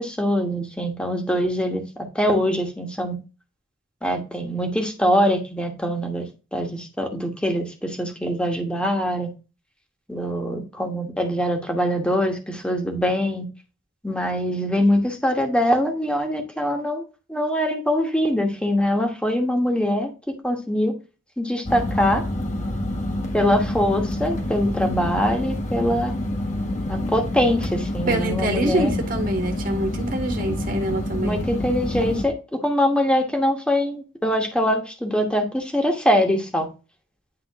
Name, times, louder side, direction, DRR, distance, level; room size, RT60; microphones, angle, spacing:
voice 1, 0.0-3.1 4.0-9.3 10.1-13.5 14.0-17.0 17.3-20.9 21.4-22.2 23.3-26.1 26.9-28.9 30.4-30.5 31.2-36.7, equal, 5° left, 1.2 m, -23 dB
sound 1, 21.6-32.2, left 1 dB, 40° left, 1.2 m, -27 dB
voice 2, 28.1-31.4, right 1 dB, 45° right, 1.6 m, -25 dB
9.9 x 3.6 x 3.6 m
head